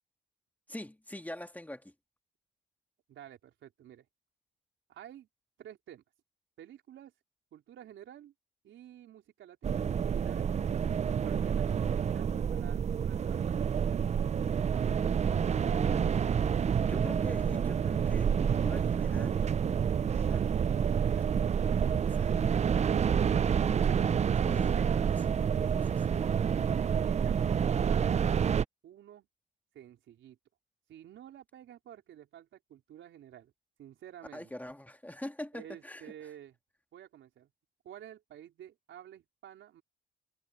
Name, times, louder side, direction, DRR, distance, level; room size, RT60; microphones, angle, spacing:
voice 1, 0.7-1.9 15.4-16.2 16.5-19.5 20.1-20.4 21.0-21.3 21.8-22.3 24.4-25.4 25.7-26.1 34.3-36.1, left 1 dB, 10° left, 1.7 m, -45 dB
voice 2, 3.1-4.1 4.9-5.3 5.6-6.0 6.6-7.1 7.5-8.3 8.6-10.5 11.2-13.5 26.9-28.3 28.8-29.3 29.7-30.4 30.9-33.5 33.8-34.5 35.5-36.6 36.9-37.5 37.8-39.8, right 11 dB, 75° right, 4.1 m, -51 dB
sound 1, 9.6-28.6, right 7 dB, 35° right, 0.5 m, -28 dB
cardioid pair, 90°, 20 cm